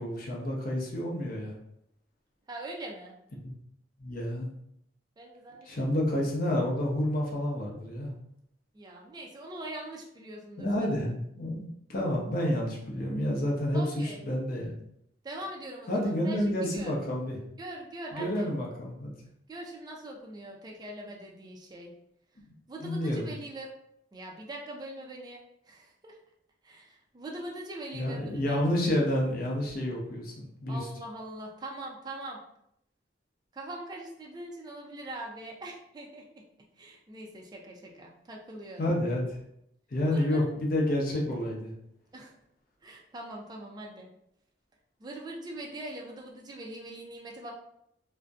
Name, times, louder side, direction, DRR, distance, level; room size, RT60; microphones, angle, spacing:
voice 1, 0.0-1.6 3.4-3.5 4.0-4.5 5.7-8.1 10.6-14.7 15.9-17.4 18.1-19.1 22.4-22.5 22.8-23.3 27.9-30.8 38.8-39.4 39.9-41.7, left 1 dB, 50° left, -2 dB, 0.6 m, -29 dB
voice 2, 2.5-3.2 5.2-5.9 8.7-10.9 13.7-14.2 15.2-16.9 17.6-18.5 19.5-21.9 22.7-23.7 24.1-25.4 25.7-26.2 26.6-28.6 30.7-32.4 33.5-36.5 36.8-38.9 40.1-40.4 42.1-42.3 42.8-44.1 45.0-47.5, right 1 dB, 20° right, 0 dB, 0.3 m, -42 dB
2.6 x 2.1 x 2.3 m, 0.75 s
head